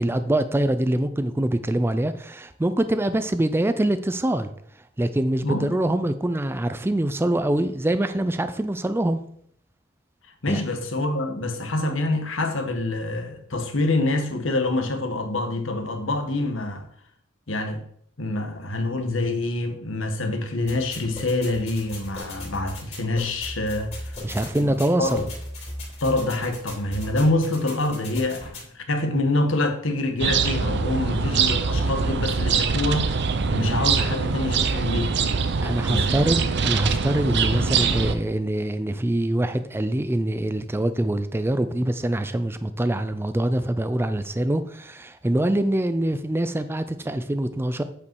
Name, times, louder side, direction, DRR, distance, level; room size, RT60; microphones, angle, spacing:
voice 1, 0.0-4.5 5.0-9.2 10.5-10.6 24.2-25.2 35.6-47.8, right 1 dB, 10° right, 0.4 m, -24 dB
voice 2, 5.4-5.7 10.4-16.9 17.5-17.8 18.2-24.2 24.6-25.3 26.0-33.2 33.5-35.1 35.8-36.2 37.3-37.6, left 2 dB, 80° left, 1.3 m, -26 dB
sound 1, 20.7-28.7, left 1 dB, 35° left, 3.3 m, -37 dB
sound 2, 30.2-38.1, right 5 dB, 60° right, 0.6 m, -23 dB
8.4 x 5.2 x 4.7 m
head